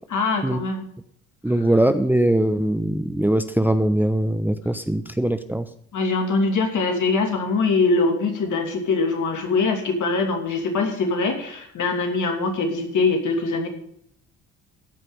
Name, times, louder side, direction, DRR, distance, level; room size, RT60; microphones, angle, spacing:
voice 1, 0.1-0.9 5.9-13.7, left 3 dB, 60° left, 4 dB, 2.8 m, -23 dB
voice 2, 1.4-5.7, right 1 dB, 5° right, 9 dB, 0.9 m, -21 dB
14.0 x 5.6 x 7.8 m, 0.68 s
hypercardioid pair, 55°, 35 cm